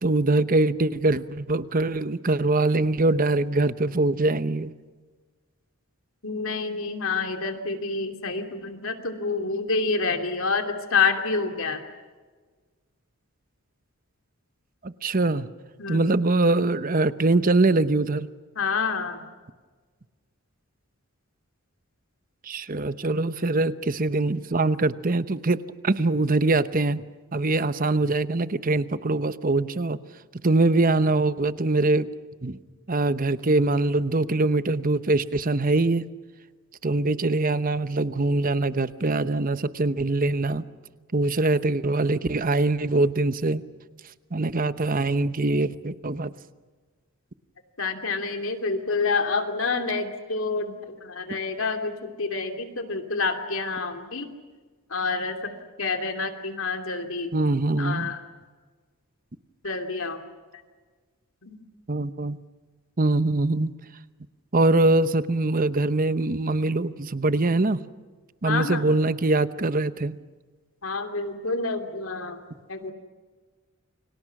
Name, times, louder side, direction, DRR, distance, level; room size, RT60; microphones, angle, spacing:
voice 1, 0.0-4.7 14.8-15.5 15.9-18.3 22.4-27.0 27.3-30.0 30.3-32.1 32.4-32.6 32.9-36.1 36.8-40.7 41.1-43.6 44.3-46.3 57.3-58.1 61.9-62.4 63.0-63.7 64.5-67.8 68.4-70.2, right 2 dB, 40° right, 13 dB, 0.9 m, -23 dB
voice 2, 6.2-11.8 15.8-16.1 18.5-19.2 47.8-54.3 54.9-57.3 57.8-58.2 59.6-60.2 61.4-61.6 68.4-68.8 70.8-72.4 72.7-72.9, left 4 dB, 70° left, 5 dB, 2.9 m, -28 dB
29.5 x 24.5 x 6.1 m, 1.4 s
head